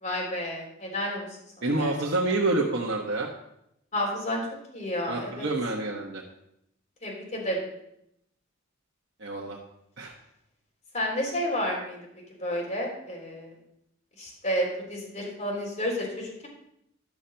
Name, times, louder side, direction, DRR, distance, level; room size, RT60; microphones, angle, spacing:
voice 1, 0.0-1.3 1.8-1.9 3.9-4.4 4.7-5.5 7.0-7.6 10.9-12.0 12.4-13.5 14.2-16.5, equal, 40° left, -3 dB, 3.6 m, -30 dB
voice 2, 1.6-3.3 5.1-6.2 9.2-9.6 10.0-10.1, right 2 dB, 65° right, -2 dB, 1.2 m, -28 dB
12.0 x 6.5 x 5.7 m, 0.79 s
head